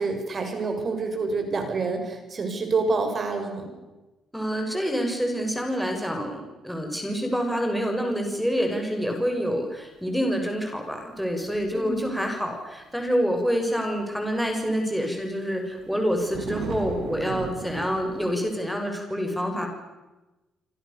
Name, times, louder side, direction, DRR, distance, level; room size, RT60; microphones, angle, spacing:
voice 1, 0.0-3.7 11.7-12.1, right 3 dB, 45° right, 5 dB, 7.2 m, -27 dB
voice 2, 4.3-19.7, equal, ahead, 3 dB, 6.7 m, -27 dB
sound 1, 11.4-12.5 13.1-13.3 14.3-14.4 15.5-18.3, right 6 dB, 75° right, 3.6 m, -37 dB
27.5 x 27.0 x 7.1 m, 1.1 s
cardioid pair, 90°, 0 cm